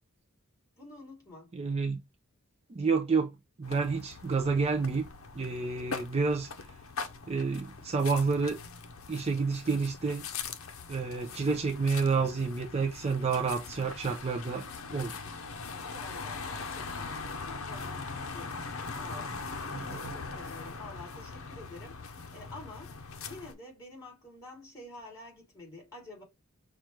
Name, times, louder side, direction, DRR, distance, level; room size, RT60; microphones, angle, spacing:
voice 1, 0.8-1.5 15.9-18.6 18.9-19.3 19.9-22.9 23.2-26.2, left 2 dB, 15° left, 3.1 m, -48 dB
voice 2, 1.5-2.0 2.7-3.3 3.6-5.1 5.3-6.5 7.3-8.6 9.1-10.3 10.9-15.2 19.7-20.1, right 4 dB, 30° right, 0.5 m, -29 dB
sound 1, 3.6-23.5, left 4 dB, 65° left, 0.7 m, -41 dB
5.8 x 2.4 x 3.1 m
head